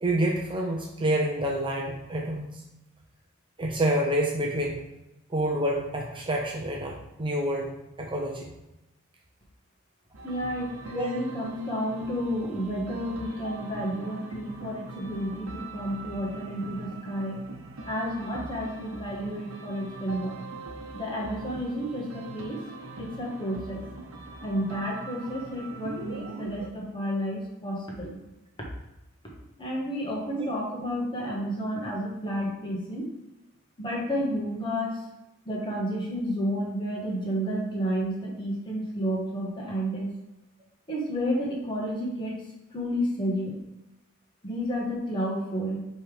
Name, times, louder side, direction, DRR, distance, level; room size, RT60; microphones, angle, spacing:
voice 1, 0.0-2.6 3.6-4.9 5.3-8.5 10.9-11.1 30.4-30.5, right 1 dB, 25° right, -1 dB, 0.7 m, -28 dB
sound 1, 10.1-26.7, right 2 dB, 85° right, 0.9 m, -42 dB
voice 2, 10.2-17.4 17.8-20.3 20.9-22.6 23.0-23.8 24.4-28.2 29.6-33.1 33.8-35.0 35.4-40.1 40.9-42.4 42.7-43.6 44.4-45.8, equal, 25° left, -3 dB, 1.5 m, -31 dB
5.6 x 3.4 x 5.1 m, 0.92 s
head